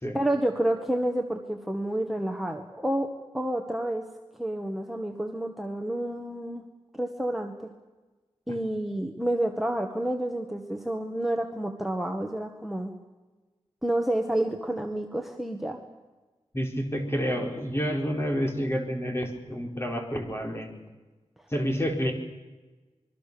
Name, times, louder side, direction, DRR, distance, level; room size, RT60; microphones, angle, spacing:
voice 1, 0.1-4.0 4.4-6.6 6.9-7.7 8.5-12.9 13.8-15.8, right 1 dB, ahead, 3 dB, 1.7 m, -29 dB
voice 2, 16.5-20.8 21.5-22.1, equal, 25° left, 2 dB, 4.6 m, -29 dB
26.5 x 22.5 x 7.0 m, 1.2 s
wide cardioid pair, 110°, 11 cm